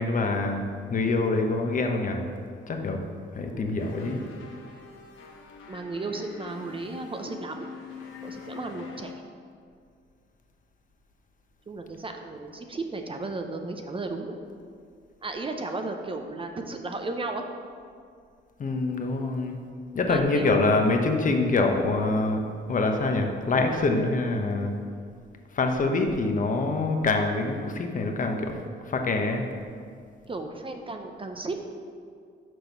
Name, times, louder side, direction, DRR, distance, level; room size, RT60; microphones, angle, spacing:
voice 1, 0.0-2.2 2.7-3.0 3.3-4.3 18.6-19.6 19.9-22.4 22.7-24.7 25.5-28.6 28.9-29.5, left 3 dB, 40° left, 3 dB, 0.9 m, -25 dB
voice 2, 3.5-4.0 5.7-7.7 8.2-9.1 11.7-14.4 15.2-17.5 20.1-20.8 30.3-31.7, right 2 dB, 25° right, 4 dB, 0.6 m, -34 dB
sound 1, 3.8-9.1, left 6 dB, 85° left, 1.2 m, -44 dB
6.1 x 5.1 x 6.0 m, 2.2 s
cardioid pair, 90°, 20 cm